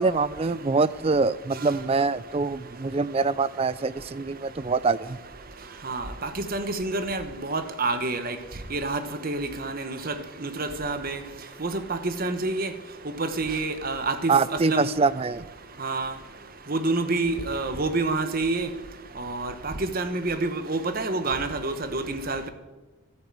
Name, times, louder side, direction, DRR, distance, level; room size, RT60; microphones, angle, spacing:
voice 1, 0.0-5.2 14.3-15.5, right 4 dB, 25° right, 18 dB, 0.3 m, -24 dB
voice 2, 5.8-8.3 8.7-10.1 10.4-11.2 11.6-12.7 13.2-14.9 15.8-16.1 16.7-18.7 19.2-22.5, right 3 dB, 40° right, 9 dB, 1.1 m, -28 dB
12.5 x 8.7 x 7.5 m, 1.1 s
head